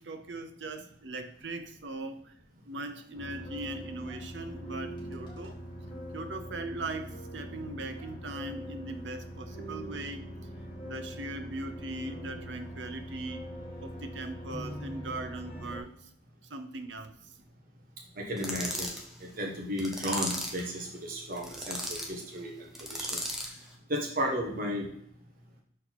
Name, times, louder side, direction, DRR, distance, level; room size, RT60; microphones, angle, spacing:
voice 1, 0.0-2.3 2.7-5.6 6.1-10.2 10.8-13.5 13.8-15.9 16.5-17.1, right 2 dB, 80° right, 7 dB, 0.8 m, -39 dB
sound 1, 3.1-15.8, equal, 30° left, 2.0 m, -42 dB
voice 2, 18.2-18.9 19.2-22.5 22.8-23.2 23.9-24.9, equal, 50° right, -1 dB, 1.3 m, -34 dB
sound 2, 18.4-19.0 19.8-20.6 21.3-22.1 22.7-23.6, equal, ahead, 1.0 m, -36 dB
6.3 x 4.5 x 4.1 m, 0.65 s
head